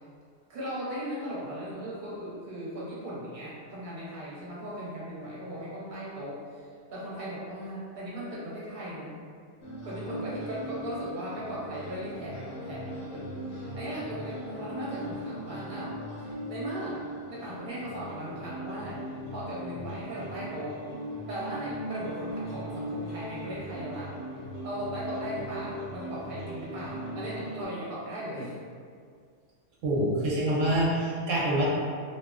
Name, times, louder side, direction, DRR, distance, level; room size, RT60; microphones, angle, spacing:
voice 1, 0.5-9.2 9.8-17.0 17.3-20.8 21.3-24.1 24.6-28.5, equal, 45° right, -8 dB, 0.8 m, -38 dB
sound 1, 9.6-27.7, equal, 70° left, 1.0 m, -39 dB
voice 2, 29.8-31.7, right 1 dB, 90° right, -5 dB, 1.0 m, -26 dB
2.6 x 2.1 x 2.3 m, 2.1 s
omnidirectional pair, 1.3 m